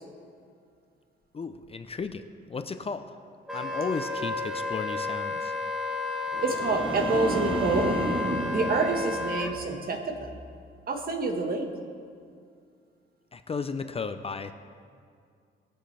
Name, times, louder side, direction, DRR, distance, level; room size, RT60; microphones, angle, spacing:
voice 1, 1.3-3.1 3.5-5.5 13.3-14.5, left 4 dB, 30° left, 9 dB, 0.5 m, -34 dB
Wind instrument woodwind instrument, 3.5-9.5, left 3 dB, ahead, 1.4 m, -32 dB
sound 1, 6.3-9.7 10.1-10.5, right 2 dB, 25° right, 1.1 m, -32 dB
voice 2, 6.4-7.9 8.5-10.3 10.9-11.7, right 3 dB, 50° right, 3 dB, 1.6 m, -27 dB
21.0 x 7.7 x 3.4 m, 2.3 s
cardioid pair, 90°, 20 cm